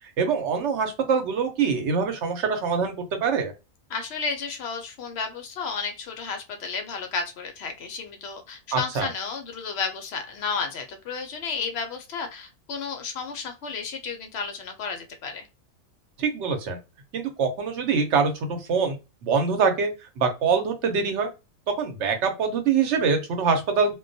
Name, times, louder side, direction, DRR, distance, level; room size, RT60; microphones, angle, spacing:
voice 1, 0.2-3.5 8.7-9.1 16.2-16.8 17.1-19.0 19.2-19.9 20.2-21.3 21.8-23.9, right 5 dB, 65° right, 5 dB, 0.9 m, -24 dB
voice 2, 3.9-15.5, left 5 dB, 65° left, 5 dB, 0.7 m, -32 dB
2.2 x 2.2 x 2.5 m, 0.27 s
omnidirectional pair, 1.4 m